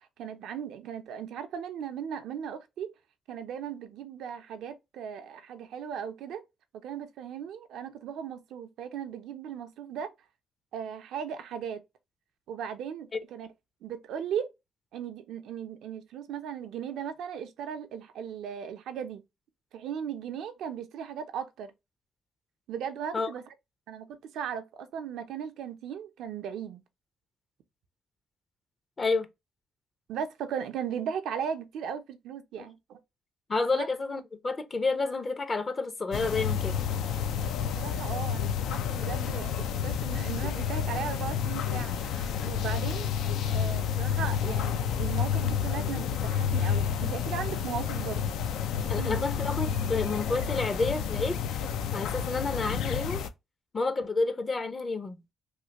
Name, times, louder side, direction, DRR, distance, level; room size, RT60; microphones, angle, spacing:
voice 1, 0.0-2.9 3.3-6.4 6.8-10.1 10.7-11.8 12.5-13.5 13.8-14.5 14.9-19.2 19.7-21.7 22.7-23.5 23.9-24.1 24.3-26.8 30.1-33.0 33.7-33.9 37.6-43.1 43.5-48.3 49.0-49.3, right 8 dB, 80° right, 0.5 m, -37 dB
voice 2, 33.5-36.8 48.9-51.4 51.9-53.2 53.7-55.2, left 3 dB, 35° left, 0.6 m, -30 dB
sound 1, 36.1-53.3, left 8 dB, 85° left, 0.4 m, -30 dB
3.1 x 2.5 x 2.8 m
cardioid pair, 90°, 0 cm